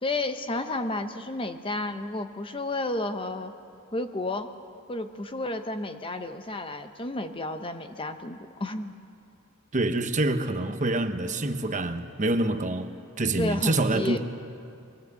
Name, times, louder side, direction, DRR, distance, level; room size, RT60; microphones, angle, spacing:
voice 1, 0.0-3.5 3.9-4.5 4.9-8.9 13.4-14.2, left 2 dB, 25° left, 0.8 m, -31 dB
voice 2, 9.7-14.2, right 2 dB, 35° right, 1.0 m, -26 dB
23.0 x 18.0 x 8.3 m
head